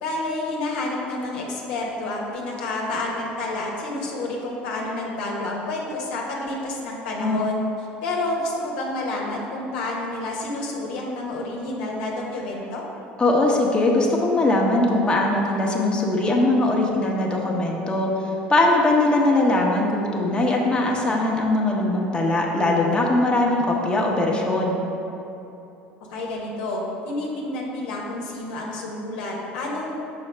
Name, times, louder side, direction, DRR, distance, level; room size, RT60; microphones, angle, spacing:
voice 1, 0.0-7.6 8.0-12.8 26.1-29.9, left 2 dB, 75° left, -2 dB, 1.0 m, -29 dB
voice 2, 13.2-18.1 18.5-24.8, left 2 dB, 15° left, -2 dB, 0.9 m, -21 dB
6.1 x 4.9 x 3.3 m, 3.0 s
hypercardioid pair, 75°, 5 cm